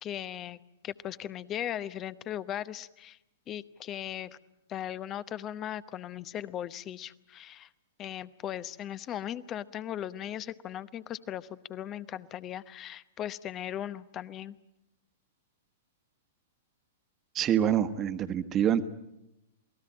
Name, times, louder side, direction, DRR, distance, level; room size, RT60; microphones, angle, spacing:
voice 1, 0.0-3.2 3.5-4.4 4.7-7.7 8.0-14.6, left 11 dB, 30° left, 16 dB, 0.9 m, -38 dB
voice 2, 17.3-18.9, right 9 dB, 25° right, 10 dB, 1.4 m, -26 dB
28.0 x 19.0 x 8.8 m, 0.90 s
figure-of-eight pair, 105°, 0 cm